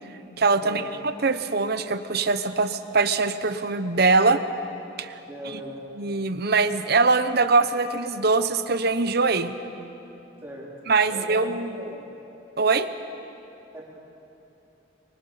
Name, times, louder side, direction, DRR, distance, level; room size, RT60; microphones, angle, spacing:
voice 1, 0.4-0.8 1.2-4.4 5.0-5.1 5.5-5.6 6.0-9.5 10.9-11.9 12.6-12.9, right 3 dB, 55° right, 10 dB, 1.0 m, -22 dB
voice 2, 5.2-5.8 10.4-12.1 13.7-13.8, equal, 15° right, -5 dB, 4.4 m, -40 dB
25.0 x 23.5 x 5.8 m, 2.9 s
head